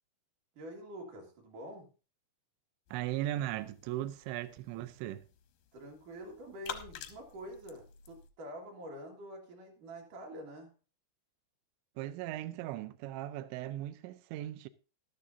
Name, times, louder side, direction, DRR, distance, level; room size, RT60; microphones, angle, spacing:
voice 1, 0.6-1.9 5.7-10.7, right 1 dB, 55° right, 2.8 m, -47 dB
sound 1, 2.9-8.3, left 9 dB, 80° left, 2.1 m, -50 dB
voice 2, 2.9-5.2 12.0-14.7, right 14 dB, 80° right, 2.9 m, -38 dB
13.5 x 12.5 x 2.7 m
omnidirectional pair, 5.3 m